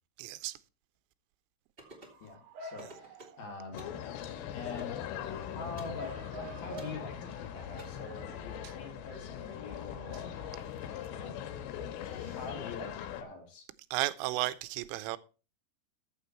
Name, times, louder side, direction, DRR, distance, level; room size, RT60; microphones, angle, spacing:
voice 1, 0.2-0.6 13.9-15.2, right 17 dB, 90° right, 3.3 m, -33 dB
sound 1, 1.8-2.2 2.8-3.4 3.8-4.0 4.8-5.0 5.8-6.0 6.8-7.0 7.8-7.9, right 2 dB, 25° right, 1.1 m, -51 dB
Bark / Motor vehicle (road) / Siren, 1.8-10.6, right 2 dB, 65° right, 3.2 m, -50 dB
voice 2, 2.2-4.0 4.5-5.0 5.3-6.1 6.6-10.5 11.1-11.4 12.3-13.7, left 4 dB, 55° left, 3.4 m, -45 dB
sound 2, 3.7-13.2, left 10 dB, 80° left, 3.6 m, -41 dB
14.0 x 7.6 x 4.4 m
omnidirectional pair, 5.7 m